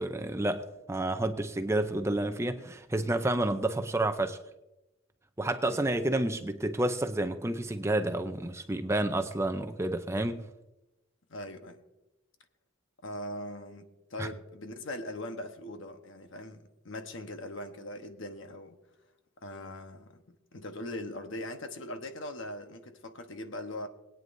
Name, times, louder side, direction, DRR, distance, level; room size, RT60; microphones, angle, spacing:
voice 1, 0.0-4.4 5.4-10.5 14.2-14.3, right 1 dB, 15° right, 0.5 m, -30 dB
voice 2, 5.6-6.0 11.3-11.8 13.0-18.8 19.4-23.9, left 1 dB, 65° left, 1.1 m, -41 dB
21.5 x 9.2 x 2.7 m
head